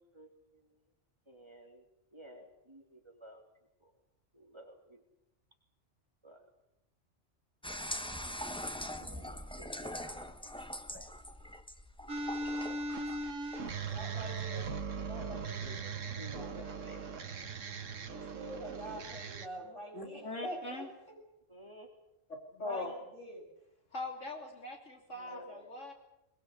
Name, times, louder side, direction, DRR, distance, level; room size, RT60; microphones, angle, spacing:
voice 1, 0.1-0.7 1.3-1.8 2.1-3.4 3.8-3.9 4.3-5.0 6.2-6.5 9.1-10.4 10.9-11.1 15.6-17.5 21.5-21.9 25.2-25.4, equal, 20° right, 1 dB, 3.5 m, -54 dB
sound 1, 7.6-14.8, left 1 dB, 5° left, 1.0 m, -43 dB
voice 2, 9.0-9.3 13.6-16.5 18.2-21.2 22.6-23.5 25.3-25.6, right 1 dB, 25° left, 0 dB, 7.8 m, -46 dB
sound 2, 12.1-19.5, right 4 dB, 85° right, 1.7 m, -39 dB
voice 3, 19.9-20.9 22.3-22.9 23.9-25.9, left 2 dB, 75° left, 2 dB, 3.6 m, -41 dB
22.5 x 22.5 x 8.1 m, 0.85 s
omnidirectional pair, 1.3 m